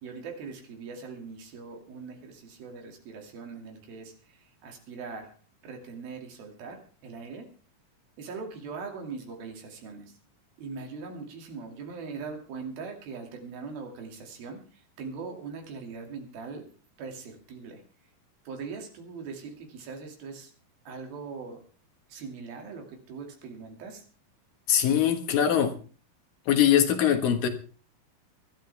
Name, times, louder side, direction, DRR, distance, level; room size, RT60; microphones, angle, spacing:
voice 1, 0.0-5.4 5.6-7.5 8.2-10.2 10.6-16.7 17.0-17.8 18.5-20.5 20.9-21.6 22.1-24.1, right 4 dB, 80° right, 3 dB, 4.2 m, -41 dB
voice 2, 24.7-25.7 26.5-27.5, left 9 dB, 70° left, 7 dB, 3.0 m, -22 dB
22.5 x 12.5 x 3.4 m, 0.36 s
omnidirectional pair, 4.2 m